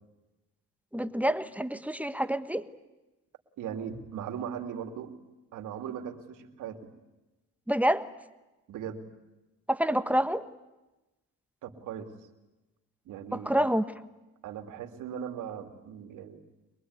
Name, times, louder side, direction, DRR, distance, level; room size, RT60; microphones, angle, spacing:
voice 1, 0.9-2.7 7.7-8.0 9.7-10.5 13.3-13.8, equal, 5° right, 11 dB, 1.3 m, -27 dB
voice 2, 3.6-5.1 5.5-6.9 8.7-9.1 11.6-12.1 13.0-13.7 14.4-16.4, right 8 dB, 85° right, 6 dB, 2.8 m, -39 dB
23.5 x 22.5 x 9.6 m, 1.0 s
cardioid pair, 90°, 30 cm